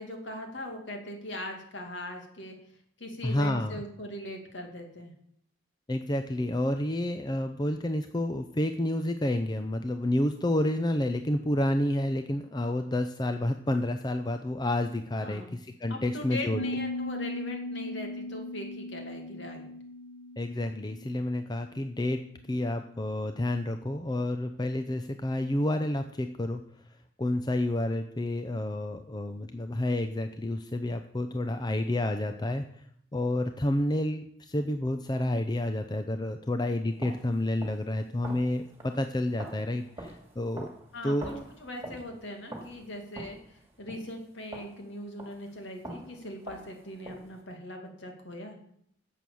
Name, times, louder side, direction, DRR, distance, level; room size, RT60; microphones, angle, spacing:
voice 1, 0.0-2.6 3.0-5.1 15.2-15.6 15.9-19.7 40.9-41.3 41.6-48.6, left 1 dB, 60° left, 3 dB, 2.4 m, -40 dB
voice 2, 3.2-3.8 5.9-16.6 20.4-26.6 27.2-32.6 33.1-40.7 41.0-41.3, left 1 dB, 20° left, 7 dB, 0.5 m, -29 dB
Piano, 16.5-22.1, left 1 dB, 85° left, 2.9 m, -38 dB
sound 1, 36.9-45.6 45.8-47.4, right 1 dB, 15° right, 2.6 m, -46 dB
11.0 x 7.7 x 7.0 m, 0.68 s
head